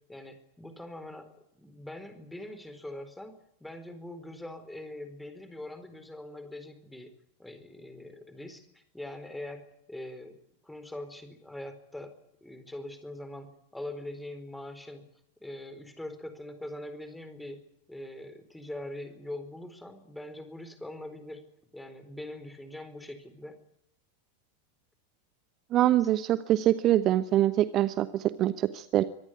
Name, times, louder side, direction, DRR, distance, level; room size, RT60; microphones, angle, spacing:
voice 1, 0.1-1.3 1.5-7.1 7.4-9.6 9.9-10.4 10.6-12.2 12.4-15.0 15.4-17.6 17.9-21.4 21.7-23.6 26.0-26.1, left 1 dB, 5° left, 10 dB, 4.4 m, -42 dB
voice 2, 25.7-29.0, right 13 dB, 35° right, 14 dB, 1.1 m, -24 dB
25.0 x 19.0 x 8.4 m, 0.75 s
figure-of-eight pair, 90°, 0 cm